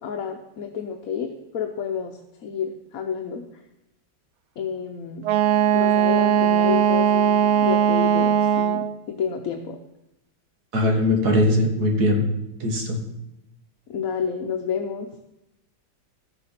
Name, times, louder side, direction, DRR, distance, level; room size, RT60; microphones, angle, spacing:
voice 1, 0.0-3.6 4.6-5.3 5.7-9.8 13.9-15.1, left 7 dB, 60° left, 3 dB, 1.2 m, -30 dB
Wind instrument woodwind instrument, 5.2-9.0, right 9 dB, 80° right, 0.6 m, -19 dB
voice 2, 10.7-12.2 12.6-13.0, left 1 dB, 60° right, 2 dB, 2.4 m, -20 dB
14.5 x 7.0 x 5.8 m, 0.87 s
omnidirectional pair, 1.9 m